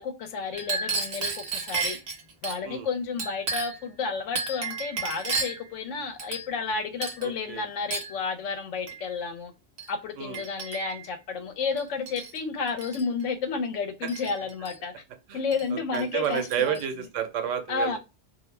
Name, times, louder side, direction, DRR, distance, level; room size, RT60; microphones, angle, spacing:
voice 1, 0.0-2.0 2.4-9.5 9.9-14.9 15.3-16.8 17.7-18.0, left 5 dB, 80° left, 0.9 m, -31 dB
Chink clink, 0.5-2.6 3.2-3.9 4.4-5.7 6.2-6.7 7.0-7.3 7.9-8.2 8.9-9.0 9.8-9.9 10.3-11.0 11.8-12.4 12.7-13.0 14.1-14.8 15.5-15.7 15.9-16.8, right 4 dB, 55° right, 0.8 m, -33 dB
voice 2, 7.2-7.6 10.2-10.4 15.3-15.4 15.7-18.0, right 9 dB, 85° right, 1.0 m, -30 dB
2.3 x 2.1 x 3.2 m
omnidirectional pair, 1.3 m